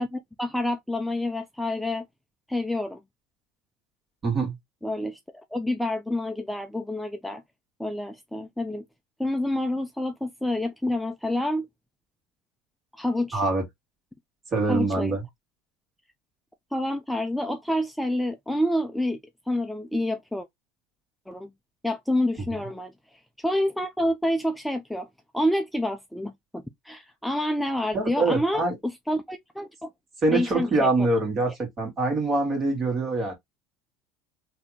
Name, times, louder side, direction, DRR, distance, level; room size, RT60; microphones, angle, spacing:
voice 1, 0.0-2.1 2.5-3.0 4.8-7.4 7.8-8.8 9.2-11.7 12.9-13.4 14.7-15.2 16.7-19.2 19.5-20.5 21.3-21.5 21.8-22.9 23.4-25.1 25.3-29.9 30.3-30.9, left 1 dB, 5° left, 0.5 m, -28 dB
voice 2, 4.2-4.5 13.3-13.6 14.5-15.2 27.9-28.7 30.2-33.3, right 2 dB, 35° right, 2.1 m, -24 dB
3.9 x 2.9 x 2.9 m
supercardioid pair, 115°, 0 cm